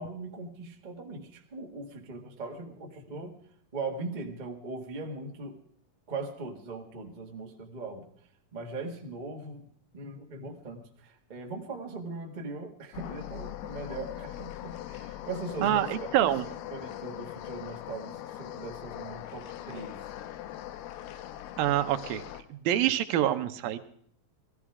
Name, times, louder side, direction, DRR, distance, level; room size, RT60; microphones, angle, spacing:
voice 1, 0.0-3.3 3.7-5.6 6.1-8.1 8.5-9.7 9.9-15.9 16.7-20.0, right 3 dB, 60° right, 2 dB, 0.4 m, -40 dB
sound 1, 12.9-22.4, left 12 dB, 85° left, 2.8 m, -41 dB
voice 2, 15.6-16.5 21.6-22.2 22.5-23.8, right 12 dB, 75° right, 9 dB, 2.6 m, -26 dB
19.0 x 14.5 x 4.8 m, 0.63 s
omnidirectional pair, 4.4 m